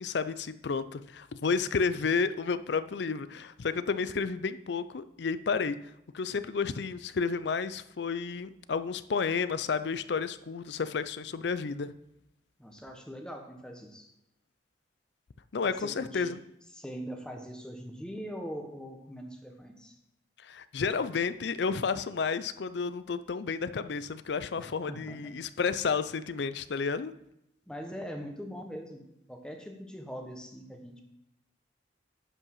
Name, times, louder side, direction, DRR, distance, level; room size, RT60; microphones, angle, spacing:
voice 1, 0.0-5.8 6.1-11.9 15.5-16.4 20.4-27.1, left 5 dB, 65° left, 13 dB, 0.5 m, -31 dB
voice 2, 12.6-14.1 15.6-16.4 16.7-20.0 24.6-25.3 27.7-31.0, equal, 5° left, 3 dB, 1.1 m, -42 dB
11.0 x 5.4 x 5.6 m, 0.84 s
head